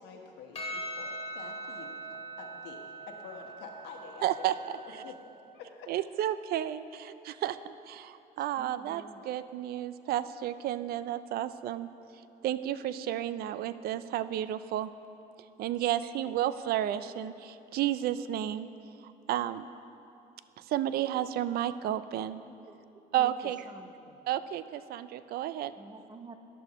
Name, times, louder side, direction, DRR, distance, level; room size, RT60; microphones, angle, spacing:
voice 1, 0.0-4.5 5.0-5.2 5.5-5.9, left 5 dB, 85° left, 2 dB, 1.3 m, -48 dB
Percussion, 0.5-5.2, right 1 dB, 35° left, 2.3 m, -41 dB
voice 2, 4.2-4.5 4.9-5.0 5.9-11.9 12.4-14.9 15.6-18.7 19.3-19.7 20.7-22.4 23.1-23.6 24.3-25.7, right 12 dB, 65° right, 14 dB, 0.4 m, -32 dB
voice 3, 8.6-9.2 16.3-16.4 22.5-22.8 23.2-24.2 25.8-26.4, right 3 dB, 25° right, 7 dB, 0.7 m, -49 dB
13.5 x 10.5 x 3.0 m, 2.7 s
cardioid pair, 110°, 17 cm